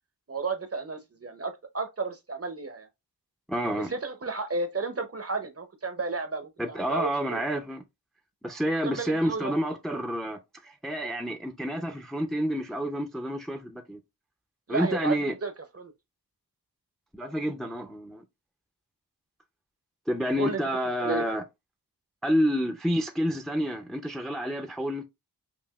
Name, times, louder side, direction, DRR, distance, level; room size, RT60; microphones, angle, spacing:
voice 1, 0.3-2.9 3.8-7.4 8.8-9.5 14.7-15.5 15.8-15.9 20.4-20.6 21.0-21.2, right 3 dB, 35° right, 0.7 m, -33 dB
voice 2, 3.5-3.9 6.6-7.8 8.4-14.0 14.7-15.3 17.1-18.2 20.1-21.4 22.2-25.1, equal, ahead, 0.5 m, -29 dB
5.4 x 2.4 x 2.3 m
wide cardioid pair, 60°, 41 cm